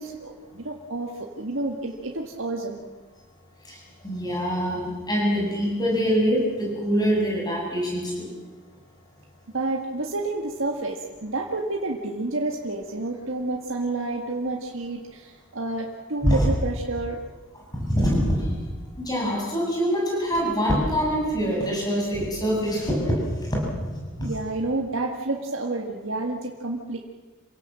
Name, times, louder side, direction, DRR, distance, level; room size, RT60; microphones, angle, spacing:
voice 1, 0.0-2.8 9.5-17.2 24.2-27.0, right 2 dB, 70° right, 1 dB, 1.8 m, -29 dB
voice 2, 4.0-8.3 16.2-16.5 17.7-18.5 19.0-23.2 23.5-23.9 24.2-24.3, equal, 20° left, -3 dB, 7.5 m, -24 dB
27.5 x 17.0 x 7.7 m, 1.4 s
head